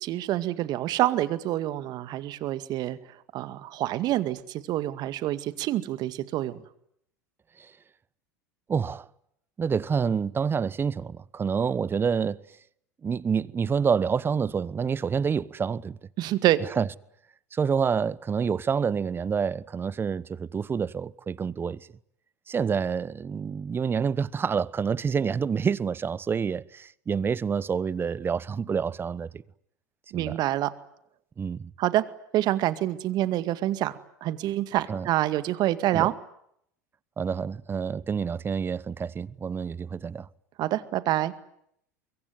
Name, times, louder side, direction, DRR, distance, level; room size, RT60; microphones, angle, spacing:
voice 1, 0.0-3.0 3.3-6.6 16.2-16.6 30.1-30.7 31.8-32.0 32.3-36.1 40.6-41.3, right 14 dB, 50° right, 2.1 m, -27 dB
voice 2, 8.7-9.1 9.6-12.5 13.0-16.0 16.8-16.9 17.5-21.9 22.5-29.4 30.1-30.4 31.4-31.7 34.9-35.1 35.9-36.1 37.2-40.3, right 6 dB, 25° right, 1.0 m, -28 dB
24.5 x 23.0 x 9.5 m
hypercardioid pair, 85°, 9 cm